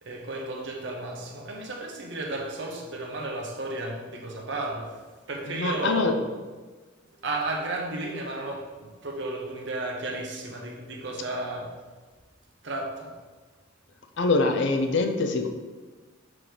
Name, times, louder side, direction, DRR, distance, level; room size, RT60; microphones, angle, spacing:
voice 1, 0.0-6.2 7.2-11.7 12.6-13.1, right 2 dB, 60° right, 0 dB, 0.9 m, -33 dB
voice 2, 5.5-6.1 14.2-15.5, left 3 dB, 60° left, 5 dB, 0.5 m, -24 dB
6.1 x 3.1 x 5.0 m, 1.3 s
head